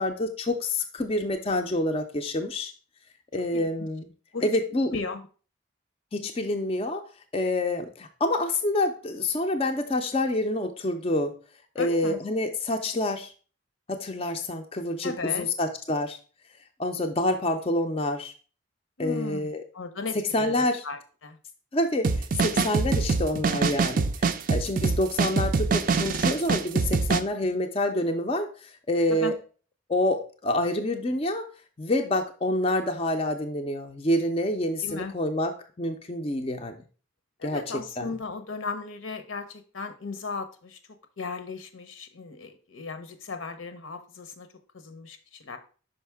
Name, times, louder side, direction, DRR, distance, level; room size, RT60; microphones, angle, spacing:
voice 1, 0.0-2.7 3.3-4.1 4.4-4.9 6.1-7.0 7.3-11.3 11.8-13.3 13.9-16.2 16.8-18.3 19.0-19.6 20.1-20.8 21.7-29.3 29.9-31.5 31.8-36.8 37.4-38.1, left 1 dB, 30° left, 5 dB, 0.4 m, -27 dB
voice 2, 3.5-3.9 4.3-4.5 4.9-5.2 11.8-12.2 15.0-15.5 19.0-19.5 19.7-21.4 27.4-27.6 29.1-29.3 34.8-35.1 37.4-40.8 41.2-44.5 44.7-45.6, left 4 dB, 80° left, 8 dB, 0.8 m, -36 dB
sound 1, 22.0-27.2, right 4 dB, 40° right, 0.4 m, -24 dB
5.5 x 5.1 x 3.4 m, 0.38 s
head